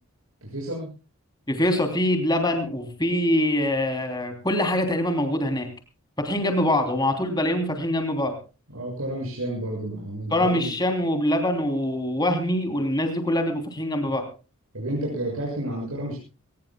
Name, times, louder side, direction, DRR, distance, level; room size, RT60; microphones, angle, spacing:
voice 1, 0.5-0.9 6.4-6.6 8.7-10.8 14.7-16.2, right 1 dB, 70° right, -3 dB, 6.8 m, -31 dB
voice 2, 1.5-5.7 6.2-8.4 10.3-14.3, left 1 dB, 20° left, 5 dB, 3.1 m, -24 dB
22.5 x 19.5 x 2.3 m, 0.32 s
head